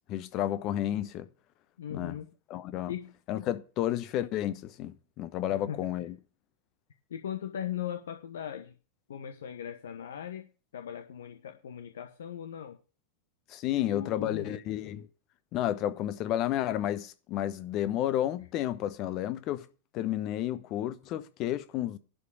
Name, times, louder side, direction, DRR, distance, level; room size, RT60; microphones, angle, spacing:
voice 1, 0.1-1.2 1.9-2.2 2.5-2.9 3.3-6.1 13.5-15.1 15.5-19.7 19.9-22.0, left 12 dB, 40° left, 1.1 m, -31 dB
voice 2, 1.8-2.3 2.9-3.1 5.5-5.8 7.1-8.7 9.1-10.5 10.7-12.8 13.8-14.6 18.4-18.5, left 9 dB, 65° left, 1.1 m, -39 dB
11.5 x 5.2 x 8.3 m
figure-of-eight pair, 90°, 0 cm